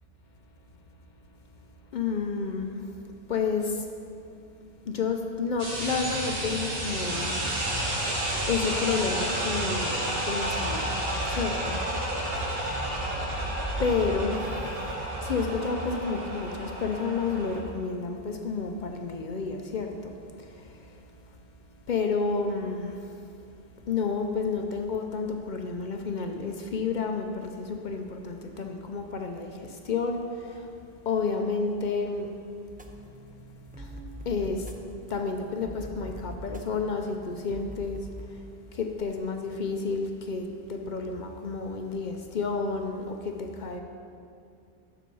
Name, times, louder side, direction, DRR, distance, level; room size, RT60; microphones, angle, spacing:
voice 1, 1.9-2.8 3.3-3.8 4.9-7.3 8.5-11.0 11.3-11.8 12.4-12.5 13.8-14.4 15.2-20.1 21.9-23.0 23.9-29.5 29.8-30.2 31.1-32.3 33.8-33.9 34.3-34.6 35.1-38.0 38.7-43.8, left 4 dB, 55° left, 4 dB, 0.6 m, -30 dB
sound 1, 5.6-17.6, right 1 dB, 70° right, 1.6 m, -31 dB
sound 2, 32.7-38.2, equal, 10° right, 0.4 m, -43 dB
7.4 x 6.9 x 5.4 m, 2.5 s
omnidirectional pair, 1.0 m